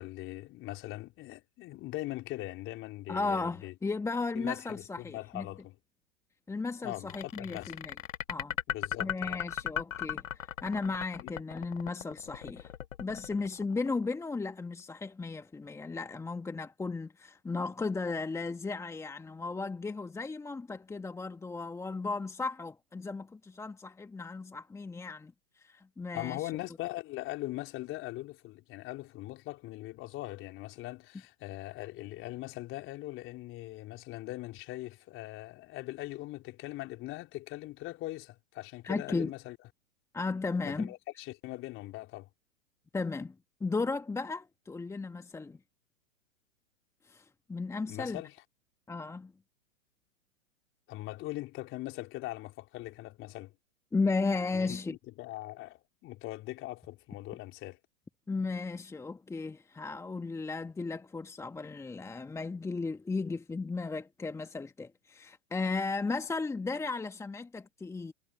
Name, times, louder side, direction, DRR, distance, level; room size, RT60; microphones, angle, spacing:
voice 1, 0.0-3.7 4.3-5.8 6.8-7.8 8.7-9.4 11.2-11.3 26.1-39.6 40.6-42.3 47.9-48.4 50.9-53.5 54.5-57.8, left 17 dB, 30° left, 3.8 m, -41 dB
voice 2, 3.1-5.5 6.5-7.9 8.3-8.5 9.0-12.7 13.0-26.5 38.8-39.3 40.1-40.9 42.9-43.3 43.6-45.6 47.0-48.2 48.9-49.3 53.9-55.0 58.3-68.1, left 3 dB, 5° left, 1.7 m, -35 dB
sound 1, 7.1-14.2, left 10 dB, 70° left, 0.9 m, -37 dB
figure-of-eight pair, 110°, 41 cm